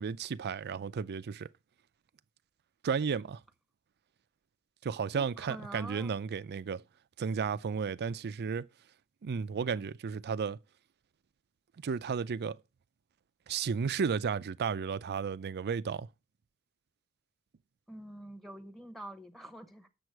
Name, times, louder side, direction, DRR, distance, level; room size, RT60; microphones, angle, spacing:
voice 1, 0.0-1.5 2.8-3.4 4.8-6.8 7.2-8.7 9.2-10.6 11.8-12.6 13.5-16.1, right 6 dB, 50° right, 0.4 m, -33 dB
voice 2, 5.1-6.1 17.9-19.9, right 1 dB, ahead, 0.8 m, -46 dB
8.0 x 6.9 x 4.6 m
head